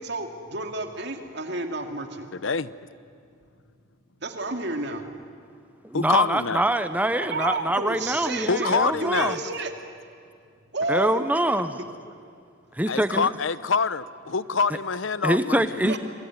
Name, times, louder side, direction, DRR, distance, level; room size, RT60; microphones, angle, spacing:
voice 1, 0.0-2.3 4.2-5.0 7.2-9.7 10.7-11.3 11.7-11.9 15.8-16.0, right 2 dB, 55° right, 2.4 m, -31 dB
voice 2, 2.3-2.7 5.9-6.7 8.5-9.4 12.9-15.8, left 5 dB, 70° left, 0.8 m, -25 dB
voice 3, 5.9-9.4 10.9-11.7 12.7-13.3 15.2-16.0, right 1 dB, 10° right, 0.7 m, -24 dB
27.0 x 22.5 x 9.7 m
head